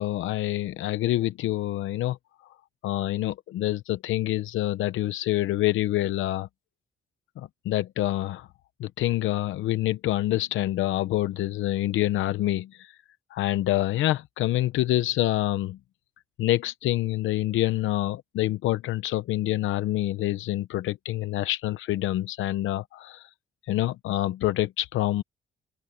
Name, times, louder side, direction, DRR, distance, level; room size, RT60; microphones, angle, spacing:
voice 1, 0.0-2.2 2.8-6.5 7.4-8.5 8.8-12.9 13.3-15.8 16.4-23.3 23.7-25.2, left 15 dB, 80° left, 0.8 m, -26 dB
open air
cardioid pair, 90°, 20 cm